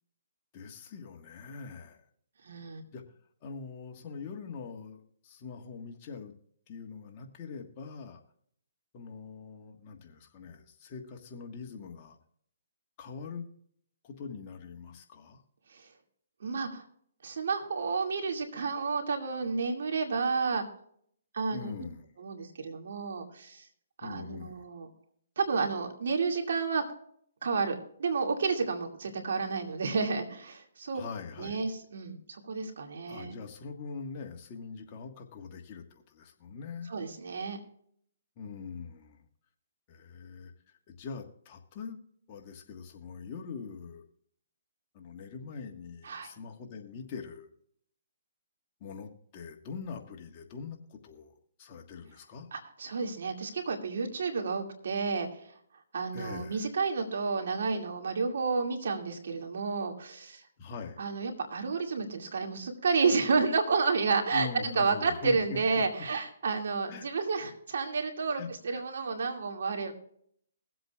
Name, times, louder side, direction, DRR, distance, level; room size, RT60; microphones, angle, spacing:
voice 1, 0.5-2.0 2.9-3.0 3.4-6.3 6.7-8.2 8.9-12.2 13.0-13.4 14.0-15.4 21.5-22.1 24.0-24.6 30.9-31.6 33.1-36.9 38.4-39.2 39.9-40.5 40.9-42.0 42.3-44.1 44.9-47.5 48.8-52.5 56.1-56.7 60.6-61.0 64.3-65.6 66.9-67.1 68.3-68.8, left 5 dB, 35° left, 2 dB, 1.5 m, -43 dB
voice 2, 2.4-2.8 15.7-15.9 16.4-16.9 17.2-20.6 21.3-21.7 22.2-23.6 24.0-24.9 25.4-26.8 27.4-31.0 31.4-33.3 36.9-37.6 46.0-46.3 52.5-55.4 55.9-60.4 61.0-69.9, right 4 dB, 70° right, 3 dB, 2.3 m, -31 dB
22.5 x 7.9 x 2.4 m, 0.65 s
hypercardioid pair, 150°, 0 cm